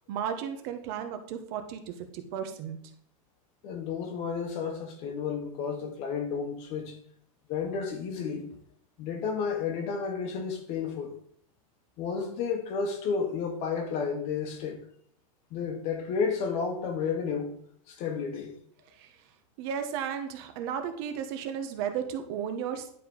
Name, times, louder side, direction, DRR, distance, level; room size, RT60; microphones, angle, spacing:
voice 1, 0.1-2.8 18.9-19.2 19.6-22.9, right 8 dB, 45° right, 1.3 m, -34 dB
voice 2, 3.6-7.0 7.5-8.5 9.0-11.2 12.0-14.8 15.5-17.6 17.9-18.5, left 6 dB, 35° left, 1.4 m, -32 dB
10.5 x 5.0 x 5.4 m
supercardioid pair, 170°, 19 cm